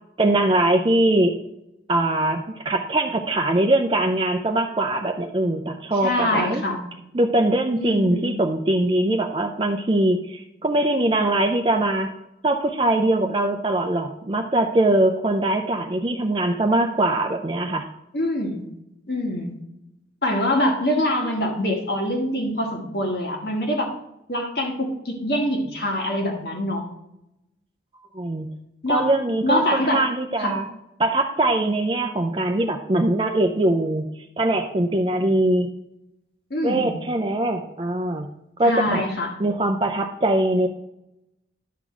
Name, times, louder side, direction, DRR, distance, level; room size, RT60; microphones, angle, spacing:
voice 1, 0.2-1.4 1.9-6.6 7.1-12.1 12.4-17.9 28.1-28.5 28.9-30.7 31.0-35.7 36.6-38.3 38.6-39.0 39.4-40.7, right 1 dB, 25° right, 4 dB, 0.5 m, -22 dB
voice 2, 6.0-6.8 7.8-8.3 18.1-18.7 19.1-19.6 20.2-23.9 24.3-26.9 28.8-29.1 29.4-30.0 30.4-30.5 36.5-37.0 38.6-39.3, left 1 dB, 60° left, 1 dB, 1.8 m, -24 dB
11.0 x 3.9 x 6.0 m, 0.85 s
head